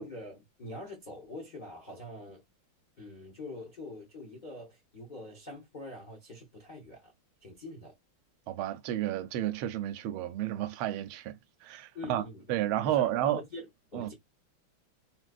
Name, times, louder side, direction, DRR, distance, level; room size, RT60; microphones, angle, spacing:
voice 1, 0.0-2.4 3.0-7.1 7.4-7.9 11.9-14.1, left 1 dB, 75° left, 0.4 m, -44 dB
voice 2, 8.5-12.2 12.5-13.4 13.9-14.1, right 12 dB, 80° right, 1.4 m, -31 dB
3.8 x 2.5 x 2.3 m
omnidirectional pair, 2.3 m